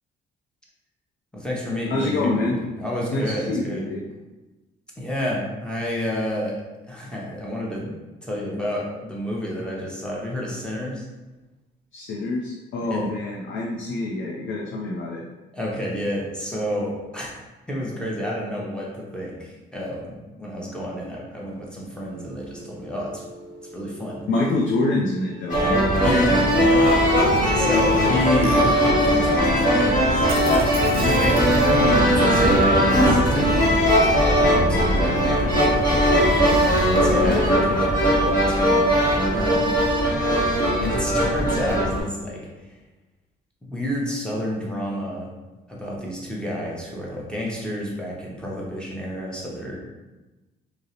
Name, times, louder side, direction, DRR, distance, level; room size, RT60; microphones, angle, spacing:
voice 1, 1.3-3.9 5.0-6.5 6.9-7.9 8.2-11.1 12.9-13.1 15.5-17.3 17.7-20.1 20.4-23.2 23.7-24.2 26.0-26.9 27.5-30.3 30.8-36.6 37.0-38.9 39.3-39.7 40.8-42.4 43.6-45.3 45.7-49.8, equal, 5° left, -4 dB, 0.7 m, -30 dB
voice 2, 1.9-2.6 3.1-4.1 11.9-15.2 24.3-25.8, left 2 dB, 70° left, -3 dB, 0.4 m, -26 dB
Musical instrument, 22.0-33.2, right 2 dB, 50° right, 0.4 m, -32 dB
sound 1, 25.5-42.0, equal, 40° left, 1.0 m, -19 dB
2.4 x 2.0 x 2.8 m, 1.1 s
cardioid pair, 90°, 20 cm